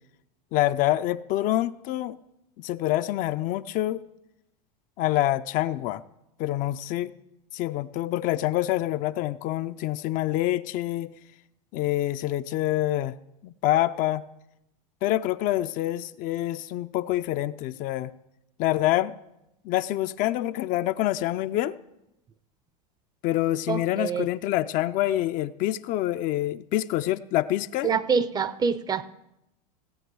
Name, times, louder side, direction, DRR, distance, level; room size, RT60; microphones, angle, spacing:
voice 1, 0.5-2.2 2.6-4.0 5.0-6.0 6.4-7.1 7.5-11.1 11.7-13.2 13.4-14.2 15.0-18.1 18.6-19.2 19.6-21.7 23.2-27.9, left 14 dB, 45° left, 12 dB, 0.4 m, -26 dB
voice 2, 23.7-24.3 27.8-29.0, right 6 dB, 20° right, 16 dB, 0.5 m, -25 dB
16.5 x 7.8 x 4.6 m, 0.86 s
supercardioid pair, 115°, 20 cm